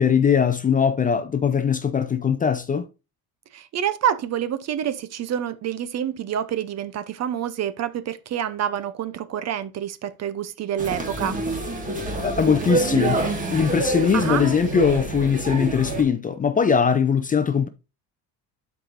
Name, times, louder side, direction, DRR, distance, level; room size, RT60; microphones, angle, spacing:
voice 1, 0.0-2.9 12.2-17.7, left 6 dB, 20° left, 0.5 m, -21 dB
voice 2, 3.5-11.4 14.1-14.4, right 9 dB, 45° right, 0.7 m, -27 dB
sound 1, 10.8-16.0, right 2 dB, 20° right, 1.8 m, -27 dB
11.5 x 4.8 x 2.6 m
cardioid pair, 155°, 37 cm